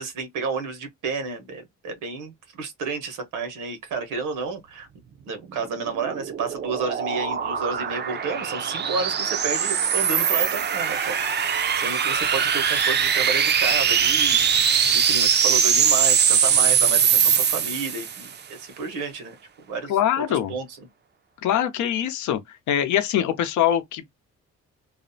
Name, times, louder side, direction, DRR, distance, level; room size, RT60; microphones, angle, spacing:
voice 1, 0.0-4.9 5.3-20.0 20.3-20.9, right 4 dB, 90° right, 1.0 m, -31 dB
sound 1, 5.7-18.3, right 7 dB, 35° right, 0.4 m, -22 dB
voice 2, 19.9-20.5 21.4-22.4 22.7-24.0, left 10 dB, 75° left, 0.6 m, -23 dB
2.6 x 2.0 x 2.6 m
cardioid pair, 90°, 30 cm